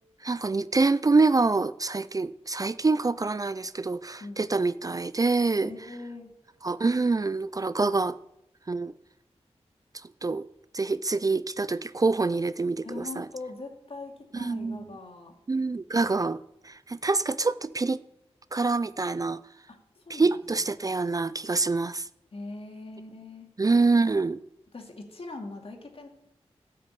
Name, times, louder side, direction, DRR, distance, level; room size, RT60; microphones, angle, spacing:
voice 1, 0.2-5.7 6.6-8.2 8.7-8.9 10.2-10.5 10.7-13.3 14.3-14.9 15.5-18.0 18.5-19.4 20.1-22.1 23.6-24.4, right 3 dB, 30° right, 0.4 m, -26 dB
voice 2, 5.6-6.3 12.8-15.3 19.7-20.4 22.3-23.5 24.7-26.1, left 3 dB, 60° left, 2.4 m, -41 dB
13.5 x 6.6 x 8.3 m
cardioid pair, 55°, 11 cm